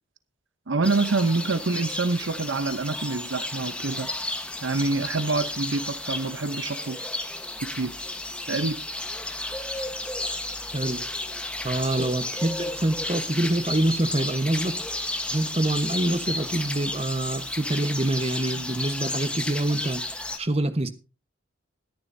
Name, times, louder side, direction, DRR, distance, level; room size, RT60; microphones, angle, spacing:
voice 1, 0.7-4.1 4.6-7.0 7.6-8.0 8.5-8.8, right 3 dB, 75° right, 0.8 m, -26 dB
sound 1, 0.8-20.4, left 2 dB, 5° left, 1.2 m, -33 dB
voice 2, 10.7-11.1 11.6-14.8 15.2-20.0 20.4-20.9, right 1 dB, 30° right, 1.2 m, -26 dB
20.5 x 10.5 x 2.7 m
head